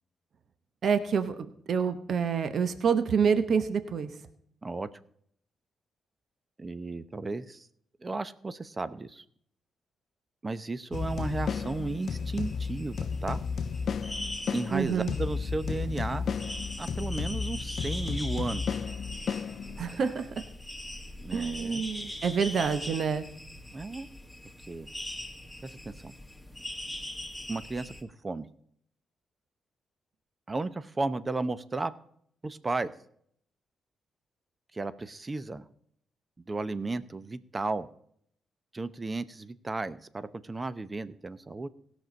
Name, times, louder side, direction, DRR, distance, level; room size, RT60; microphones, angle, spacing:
voice 1, 0.8-4.1 14.7-15.1 19.8-20.3 21.3-23.3, right 6 dB, 65° right, 10 dB, 0.9 m, -27 dB
voice 2, 6.6-7.7 8.0-9.2 10.4-13.4 14.5-16.3 16.8-18.7 21.2-21.8 23.7-24.1 24.7-24.9 25.6-26.1 27.5-28.5 30.5-31.9 32.4-32.9 34.7-35.6 36.5-37.9 38.7-41.7, right 3 dB, 30° right, 14 dB, 0.7 m, -34 dB
sound 1, 10.9-20.0, left 6 dB, 60° left, 0.4 m, -33 dB
sound 2, 10.9-28.0, left 1 dB, ahead, 1.7 m, -42 dB
17.0 x 6.2 x 5.2 m, 0.67 s
supercardioid pair, 50°, 0 cm